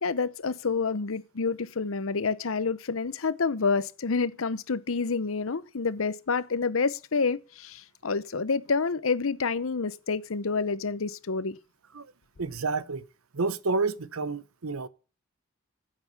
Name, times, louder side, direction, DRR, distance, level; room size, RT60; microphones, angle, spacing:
voice 1, 0.0-11.6, left 4 dB, 75° left, 0.8 m, -28 dB
voice 2, 12.4-13.0 13.3-14.9, right 3 dB, 90° right, 0.8 m, -29 dB
10.5 x 7.8 x 6.8 m
head